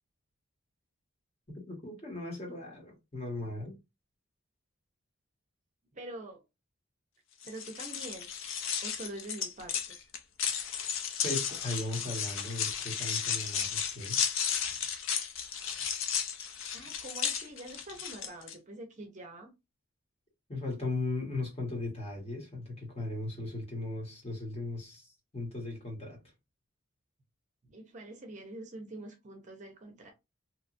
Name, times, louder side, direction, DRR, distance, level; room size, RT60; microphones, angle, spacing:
voice 1, 1.7-3.8 11.2-14.2 20.5-25.1 25.3-26.2, left 2 dB, 30° left, 1.1 m, -37 dB
voice 2, 5.9-6.4 7.4-8.3 8.8-10.0 16.7-19.5 27.6-30.1, right 1 dB, 35° right, 0.6 m, -45 dB
sound 1, 7.4-18.5, left 8 dB, 65° left, 0.4 m, -34 dB
2.9 x 2.3 x 2.5 m
head